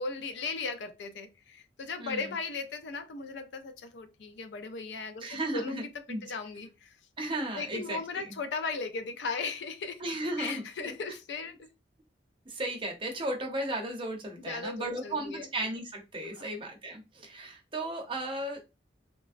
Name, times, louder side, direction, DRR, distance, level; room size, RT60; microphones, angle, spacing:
voice 1, 0.0-7.0 7.5-10.0 10.4-11.7 14.4-15.5 16.4-16.5, left 4 dB, 75° left, 0.4 m, -37 dB
voice 2, 5.2-6.2 7.2-8.4 10.0-10.9 12.5-18.8, right 1 dB, 30° right, 0.6 m, -35 dB
3.3 x 2.0 x 2.4 m
head